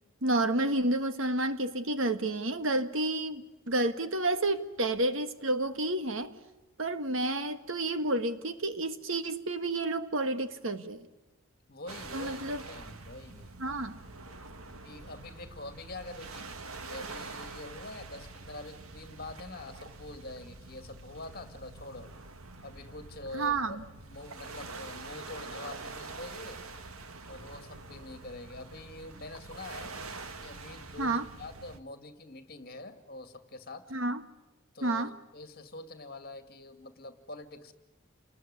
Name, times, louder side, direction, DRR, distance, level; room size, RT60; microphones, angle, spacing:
voice 1, 0.2-6.3 6.8-11.0 12.1-12.6 13.6-14.0 23.3-23.8 31.0-31.2 33.9-34.2 34.8-35.1, right 2 dB, 65° right, 1.6 m, -30 dB
voice 2, 11.7-13.5 14.8-16.5 16.8-22.1 22.6-26.6 27.3-30.0 30.4-33.9 34.7-37.7, left 2 dB, 45° left, 2.3 m, -45 dB
sound 1, 11.9-31.8, right 3 dB, 80° right, 1.9 m, -45 dB
29.0 x 20.5 x 9.7 m
head